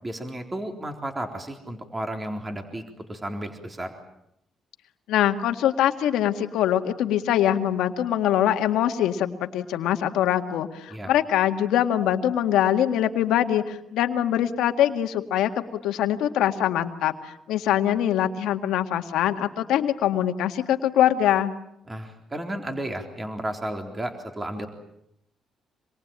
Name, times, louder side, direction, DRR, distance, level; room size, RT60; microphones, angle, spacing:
voice 1, 0.0-2.8 3.1-3.9 10.9-11.1 21.9-24.7, right 1 dB, 20° right, 4 dB, 3.9 m, -33 dB
voice 2, 5.1-15.5 15.8-21.5, left 11 dB, 85° left, 6 dB, 1.9 m, -23 dB
26.5 x 22.5 x 9.0 m, 0.80 s
cardioid pair, 90°, 0 cm